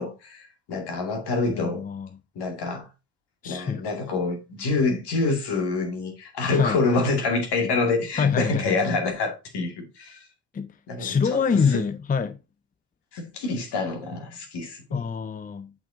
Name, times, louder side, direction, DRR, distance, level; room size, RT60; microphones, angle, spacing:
voice 1, 0.0-1.8 2.4-2.9 3.4-10.3 10.9-11.8 13.1-15.0, left 3 dB, 60° left, 2.4 m, -27 dB
voice 2, 1.5-2.1 3.4-3.8 6.4-6.8 8.2-8.8 10.5-12.4 14.9-15.7, left 6 dB, 20° left, 0.5 m, -26 dB
7.8 x 4.4 x 3.8 m
hypercardioid pair, 45°, 45 cm